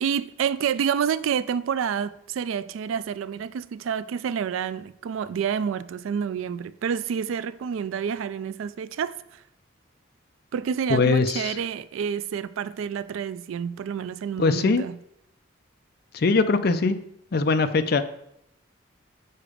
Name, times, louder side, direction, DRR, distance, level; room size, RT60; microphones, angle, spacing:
voice 1, 0.0-9.4 10.5-15.0, right 7 dB, 85° right, 0.3 m, -28 dB
voice 2, 10.9-11.6 14.4-14.8 16.1-17.0 17.3-18.0, left 3 dB, 50° left, 0.5 m, -21 dB
6.7 x 4.9 x 4.9 m
head